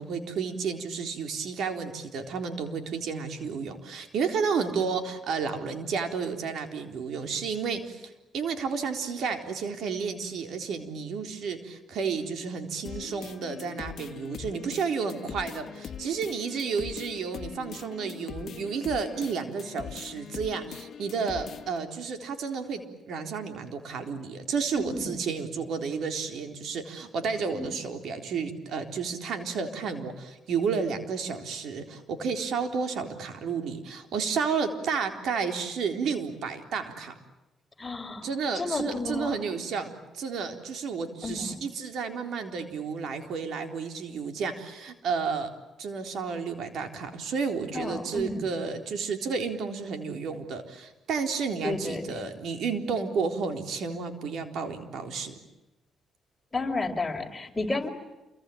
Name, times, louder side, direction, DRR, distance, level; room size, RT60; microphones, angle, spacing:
voice 1, 0.0-22.8 23.1-37.1 38.2-45.5 45.8-55.3, right 5 dB, 70° right, 6 dB, 3.9 m, -31 dB
sound 1, 12.8-21.8, left 8 dB, 60° left, 1.4 m, -42 dB
voice 2, 24.8-25.2 27.5-27.7 37.8-38.3 38.5-39.4 41.2-41.6 47.7-48.5 51.6-52.2 56.5-57.9, left 3 dB, 20° left, 3 dB, 4.8 m, -32 dB
28.5 x 24.0 x 8.7 m, 1.0 s
cardioid pair, 90°, 0 cm